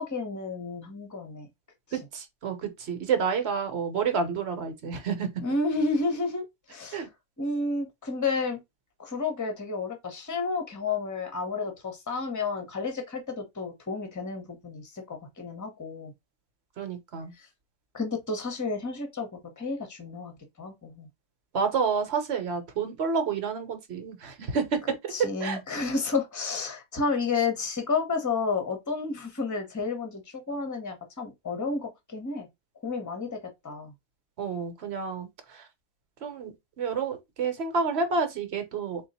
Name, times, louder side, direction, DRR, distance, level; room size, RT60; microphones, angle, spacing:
voice 1, 0.0-1.5 1.9-2.0 5.4-7.1 7.4-8.6 9.0-16.1 17.3-17.5 17.9-21.1 25.1-32.5 32.8-33.9, left 4 dB, 15° left, 0.8 m, -31 dB
voice 2, 1.9-5.3 6.9-7.1 16.8-17.3 21.5-24.8 25.4-25.6 34.4-35.7 36.2-39.0, right 5 dB, 60° right, 1.1 m, -29 dB
3.8 x 2.3 x 4.1 m
omnidirectional pair, 1.3 m